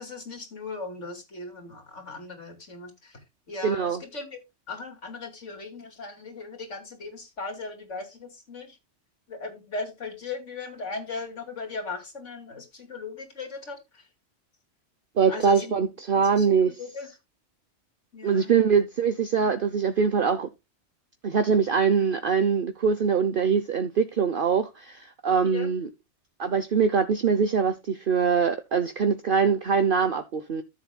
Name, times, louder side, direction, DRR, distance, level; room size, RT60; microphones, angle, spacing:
voice 1, 0.0-3.2 3.5-4.4 4.7-8.8 9.3-14.1 15.3-15.7 16.1-17.1 18.1-18.6 25.4-25.7, left 3 dB, 70° left, 3.1 m, -38 dB
voice 2, 3.6-4.0 15.2-16.8 18.2-20.5 21.2-25.9 26.4-30.6, right 6 dB, 50° right, 1.0 m, -23 dB
14.0 x 7.3 x 2.3 m
omnidirectional pair, 1.3 m